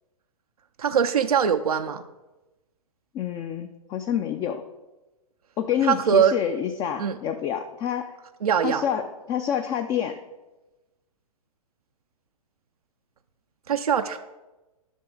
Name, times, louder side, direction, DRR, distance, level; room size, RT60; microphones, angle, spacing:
voice 1, 0.8-2.0 5.8-6.3 7.0-7.2 8.4-8.8 13.7-14.2, right 8 dB, 90° right, 6 dB, 0.5 m, -22 dB
voice 2, 3.1-4.6 5.6-8.2 8.6-10.2, left 9 dB, 25° left, 7 dB, 0.4 m, -27 dB
11.0 x 6.1 x 3.8 m, 1.1 s
hypercardioid pair, 120°, 19 cm